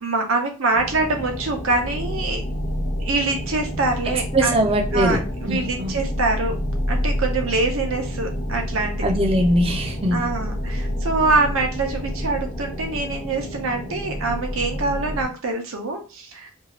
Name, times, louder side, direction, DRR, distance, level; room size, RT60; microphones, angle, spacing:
voice 1, 0.0-2.4 3.0-4.6 4.9-6.6 6.9-9.0 10.1-16.5, right 3 dB, 80° right, 3 dB, 0.7 m, -24 dB
sound 1, 0.7-15.2, equal, 45° left, 0.8 m, -28 dB
voice 2, 4.1-5.2 5.5-5.9 9.0-10.2, right 1 dB, 25° right, 2 dB, 0.5 m, -21 dB
2.6 x 2.4 x 3.0 m, 0.33 s
head